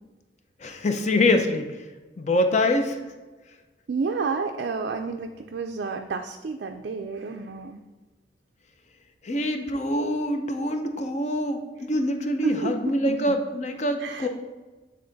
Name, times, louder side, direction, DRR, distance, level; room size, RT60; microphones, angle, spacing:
voice 1, 0.6-1.7 2.2-3.0 9.2-14.3, left 1 dB, 40° left, 6 dB, 0.6 m, -25 dB
voice 2, 3.9-7.8 12.4-13.4 14.0-14.3, right 4 dB, 60° right, 4 dB, 0.4 m, -30 dB
7.8 x 3.7 x 3.9 m, 1.2 s
head